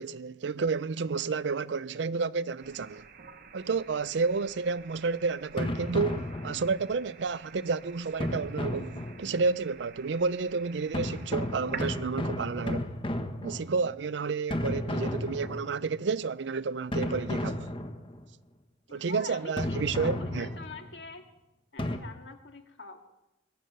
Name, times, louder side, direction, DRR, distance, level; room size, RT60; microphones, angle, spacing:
voice 1, 0.0-3.0 3.5-12.9 13.4-17.7 18.9-20.5, right 4 dB, 70° right, 0.5 m, -30 dB
sound 1, 2.6-11.9, right 6 dB, 55° right, 1.2 m, -49 dB
sound 2, 5.6-6.9 8.2-9.5 10.9-14.0 14.5-16.0 16.9-18.3 19.6-20.9 21.8-22.0, left 1 dB, 30° left, 1.3 m, -33 dB
voice 2, 18.9-21.2 21.7-23.0, left 3 dB, 70° left, 2.0 m, -45 dB
22.0 x 9.3 x 6.8 m
head